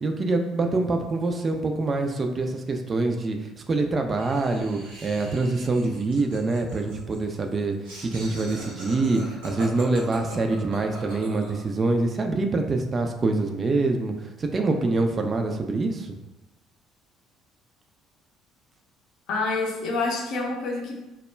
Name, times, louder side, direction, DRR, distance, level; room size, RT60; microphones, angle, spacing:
voice 1, 0.0-7.8 8.0-14.1 14.4-16.1, right 3 dB, 35° right, 5 dB, 0.3 m, -25 dB
Laughter, 4.2-11.7, right 1 dB, 75° right, 0.8 m, -41 dB
voice 2, 19.3-21.0, left 3 dB, 60° left, -1 dB, 0.5 m, -27 dB
2.2 x 2.1 x 3.1 m, 0.99 s
figure-of-eight pair, 55°, 0 cm